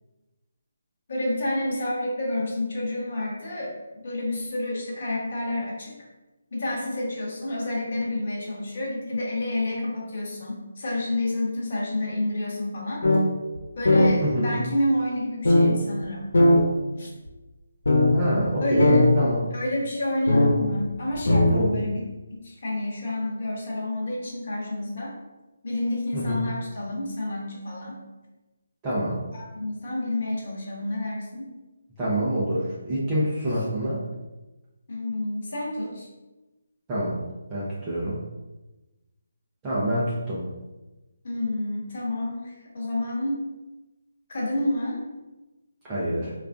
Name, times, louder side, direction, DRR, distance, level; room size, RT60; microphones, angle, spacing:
voice 1, 1.1-5.9 6.5-13.0 13.8-16.3 17.0-17.1 18.6-19.1 19.5-22.0 22.3-25.1 25.6-28.0 29.3-31.5 34.9-36.1 41.2-43.4 44.3-45.0, left 1 dB, 40° left, -4 dB, 1.1 m, -29 dB
sound 1, 13.0-13.2 13.6-13.7 13.8-14.1 15.4-15.7 16.3-16.6 17.3-17.4 17.9-18.1 18.5-18.6 18.8-19.1 20.3-20.5 21.1-21.6, left 1 dB, 90° left, 0.9 m, -17 dB
voice 2, 14.2-14.6 18.1-19.4 21.5-21.7 26.1-26.5 28.8-29.2 32.0-34.0 36.9-37.1 37.5-38.1 39.6-40.4 45.8-46.3, equal, 10° right, -9 dB, 0.6 m, -26 dB
3.5 x 2.5 x 3.5 m, 1.1 s
hypercardioid pair, 175°, 0 cm